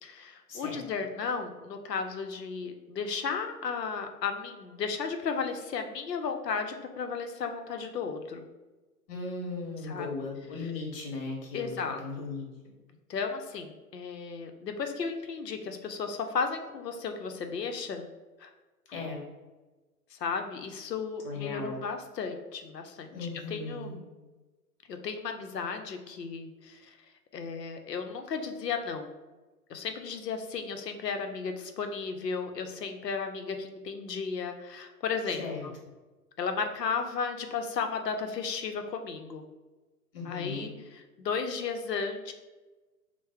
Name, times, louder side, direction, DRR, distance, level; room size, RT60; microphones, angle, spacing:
voice 1, 0.0-8.4 9.8-10.1 10.6-10.7 11.5-12.0 13.1-18.1 18.4-18.5 20.1-24.0 24.9-27.0 27.3-29.1 29.7-35.8 36.4-39.4 40.2-42.3, left 5 dB, 80° left, 6 dB, 0.7 m, -34 dB
voice 2, 9.1-12.5 18.9-19.2 21.2-21.8 23.1-24.0 35.4-35.6 40.1-40.7, left 3 dB, 35° left, -1 dB, 1.0 m, -37 dB
3.4 x 2.1 x 3.4 m, 1.2 s
figure-of-eight pair, 125°, 48 cm